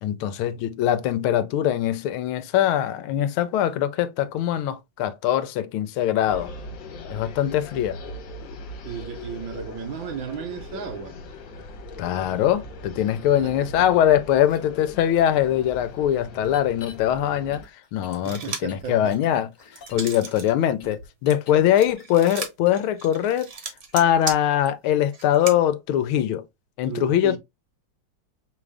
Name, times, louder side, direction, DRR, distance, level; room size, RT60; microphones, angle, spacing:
voice 1, 0.0-6.5 7.1-8.0 12.0-17.6 17.9-19.5 19.9-23.5 23.9-26.4 26.8-27.4, left 11 dB, 80° left, 1.4 m, -22 dB
athens art installation, 6.3-17.6, left 2 dB, 65° left, 1.5 m, -40 dB
voice 2, 8.8-11.2 13.2-13.9 18.2-19.2 26.8-27.4, right 7 dB, 70° right, 1.5 m, -35 dB
sound 1, 14.4-14.6 15.2-15.3 16.4-16.9 17.5-20.1 20.4-22.4 22.6-22.9, left 4 dB, 45° left, 1.4 m, -47 dB
sound 2, 18.1-18.8 19.3-20.5 20.8-25.6, right 4 dB, 45° right, 1.1 m, -35 dB
5.3 x 2.5 x 3.2 m
omnidirectional pair, 2.3 m